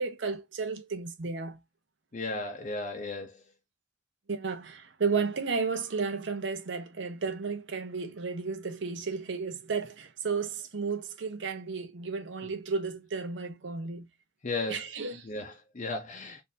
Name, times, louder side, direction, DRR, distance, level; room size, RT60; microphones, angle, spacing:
voice 1, 0.0-1.6 4.3-14.1 14.7-15.3, right 4 dB, 75° right, 0.7 m, -33 dB
voice 2, 2.1-3.5 14.4-14.9 15.2-16.4, left 2 dB, 40° left, 0.6 m, -35 dB
4.0 x 2.6 x 2.6 m
head